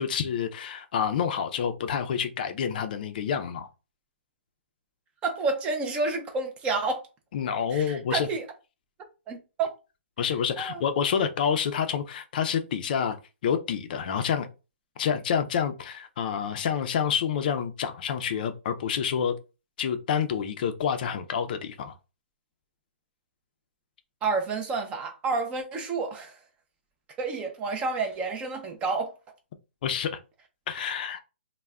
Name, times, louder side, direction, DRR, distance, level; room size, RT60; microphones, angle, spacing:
voice 1, 0.0-3.7 7.3-8.3 10.2-13.2 13.4-14.5 15.0-19.4 19.8-21.9 29.8-30.2 30.7-31.2, left 7 dB, 45° left, 0.4 m, -28 dB
voice 2, 5.2-7.0 7.7-8.4 9.3-9.7 10.6-10.8 24.2-26.4 27.2-29.1, right 4 dB, 15° right, 0.4 m, -29 dB
2.2 x 2.1 x 3.4 m
hypercardioid pair, 150°, 7 cm